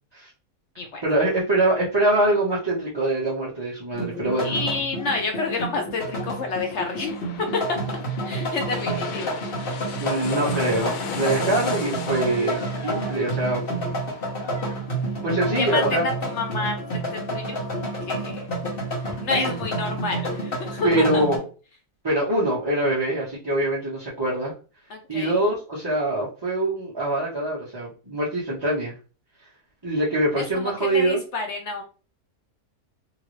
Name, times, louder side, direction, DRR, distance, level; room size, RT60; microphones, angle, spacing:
voice 1, 1.0-4.5 10.0-13.6 15.2-16.0 19.3-19.5 20.8-21.4 22.0-24.5 25.1-28.9 29.8-31.2, right 1 dB, 25° right, -8 dB, 0.6 m, -24 dB
sound 1, 3.9-21.4, right 1 dB, 45° left, 1.0 m, -29 dB
voice 2, 4.4-7.2 7.5-7.8 8.2-9.9 15.6-17.6 18.1-18.4 19.0-21.2 24.9-25.3 30.4-31.8, left 3 dB, 65° left, 3 dB, 0.7 m, -29 dB
sound 2, 6.2-17.6 18.0-18.1, left 7 dB, 85° left, 1.1 m, -38 dB
2.8 x 2.5 x 3.0 m, 0.36 s
omnidirectional pair, 1.6 m